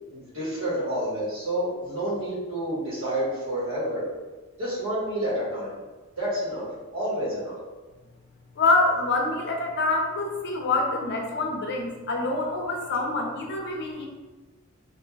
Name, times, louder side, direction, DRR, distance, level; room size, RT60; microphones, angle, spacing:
voice 1, 0.1-4.0 4.6-5.7 6.2-6.7 6.9-7.6, right 1 dB, 80° right, -8 dB, 1.3 m, -29 dB
voice 2, 8.6-14.1, left 3 dB, 55° left, 1 dB, 0.5 m, -26 dB
2.5 x 2.3 x 3.1 m, 1.3 s
head